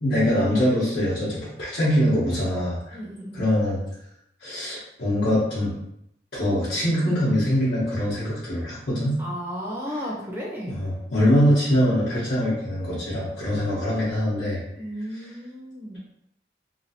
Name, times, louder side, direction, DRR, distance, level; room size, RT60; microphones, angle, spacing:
voice 1, 0.0-3.0 3.3-3.8 4.4-5.7 6.3-9.2 10.7-14.6, equal, 65° left, -10 dB, 1.0 m, -23 dB
voice 2, 2.9-3.5 9.2-10.8 14.7-16.0, equal, 15° right, -4 dB, 0.7 m, -34 dB
2.9 x 2.5 x 2.7 m, 0.77 s
head